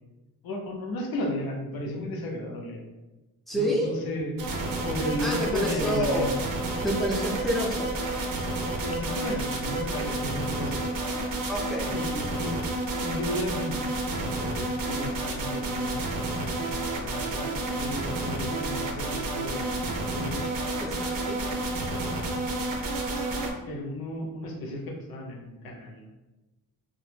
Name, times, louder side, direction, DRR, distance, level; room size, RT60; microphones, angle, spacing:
voice 1, 0.4-2.8 3.5-4.3 4.9-6.3 8.8-10.9 11.9-20.4 21.4-22.6 23.2-23.3 23.7-26.1, left 1 dB, 65° left, 1 dB, 0.7 m, -34 dB
voice 2, 3.5-3.9 5.0-6.4 6.8-7.9 11.5-12.0 20.8-21.4, equal, ahead, -2 dB, 0.6 m, -28 dB
sound 1, 4.4-23.5, right 2 dB, 60° right, 0.6 m, -30 dB
2.1 x 2.1 x 3.1 m, 1.1 s
cardioid pair, 80°, 38 cm